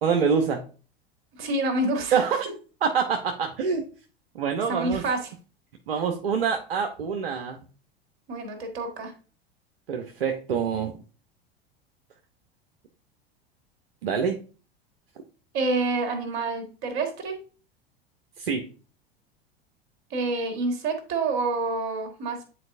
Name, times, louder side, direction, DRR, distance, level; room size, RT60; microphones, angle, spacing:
voice 1, 0.0-0.6 2.1-2.5 2.8-3.9 4.3-5.0 5.9-7.6 9.9-11.0 14.0-14.4 18.4-18.6, right 6 dB, 65° right, 4 dB, 0.8 m, -25 dB
voice 2, 1.4-2.2 4.7-5.2 8.3-9.1 15.5-17.3 20.1-22.4, right 3 dB, 45° right, 4 dB, 1.9 m, -27 dB
9.7 x 4.1 x 2.6 m, 0.37 s
figure-of-eight pair, 80°, 31 cm